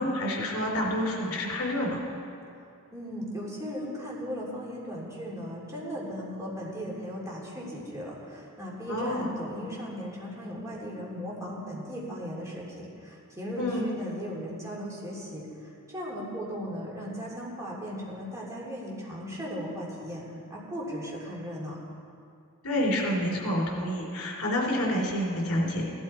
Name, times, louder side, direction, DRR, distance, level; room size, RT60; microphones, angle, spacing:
voice 1, 0.0-2.0 8.9-9.3 13.6-13.9 22.6-25.8, left 1 dB, 75° left, -1 dB, 3.2 m, -28 dB
voice 2, 2.9-20.2 20.5-21.8, equal, 15° right, -5 dB, 3.1 m, -37 dB
16.5 x 12.5 x 4.4 m, 2.5 s
head